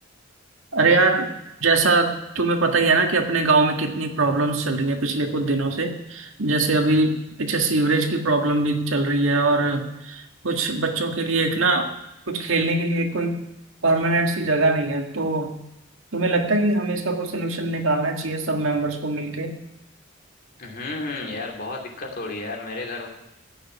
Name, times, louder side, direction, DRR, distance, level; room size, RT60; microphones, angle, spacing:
voice 1, 0.7-1.3 1.6-11.9 12.3-13.4 13.8-15.5 16.1-19.5, right 3 dB, 80° right, 3 dB, 1.8 m, -22 dB
voice 2, 20.6-23.1, left 2 dB, 45° left, 0 dB, 2.7 m, -32 dB
16.0 x 6.6 x 9.5 m, 0.88 s
head